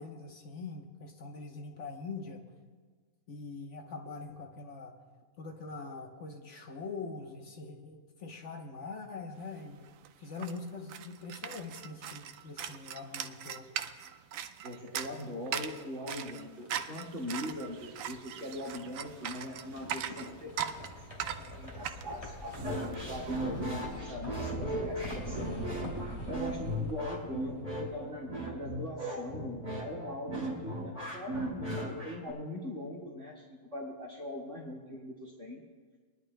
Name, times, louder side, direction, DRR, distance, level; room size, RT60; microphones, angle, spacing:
voice 1, 0.0-2.4 3.3-4.9 5.4-9.9 10.2-13.7 24.6-24.9, left 4 dB, 55° left, 2 dB, 1.2 m, -43 dB
sound 1, 9.5-9.6 9.8-23.7, right 9 dB, 70° right, 0.9 m, -40 dB
voice 2, 14.6-25.6 25.9-35.6, left 1 dB, 55° right, -4 dB, 2.2 m, -41 dB
sound 2, 16.3-28.4, left 1 dB, 20° left, 2.5 m, -45 dB
sound 3, 22.6-32.3, right 1 dB, 30° right, 2.9 m, -37 dB
23.5 x 11.0 x 2.2 m, 1.5 s
omnidirectional pair, 1.5 m